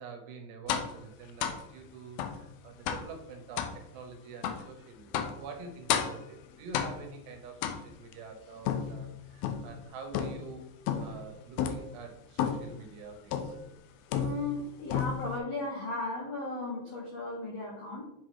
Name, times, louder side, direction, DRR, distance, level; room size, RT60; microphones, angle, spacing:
voice 1, 0.0-10.7 11.0-13.6, right 5 dB, 80° right, 3 dB, 3.1 m, -46 dB
sound 1, 0.7-1.0 1.4-1.7 2.2-2.4 2.9-3.1 3.6-3.8 4.4-4.7 5.1-5.4 5.9-6.3 6.7-7.2 7.6-8.1 8.7-9.7 10.1-10.5 10.9-11.2 11.6-11.9 12.4-12.7 13.3-13.6 14.1-14.6 14.9-15.4, left 8 dB, 90° left, 2.2 m, -32 dB
voice 2, 14.1-18.0, left 2 dB, 65° left, -4 dB, 1.6 m, -36 dB
7.7 x 6.2 x 3.1 m, 0.86 s
omnidirectional pair, 5.0 m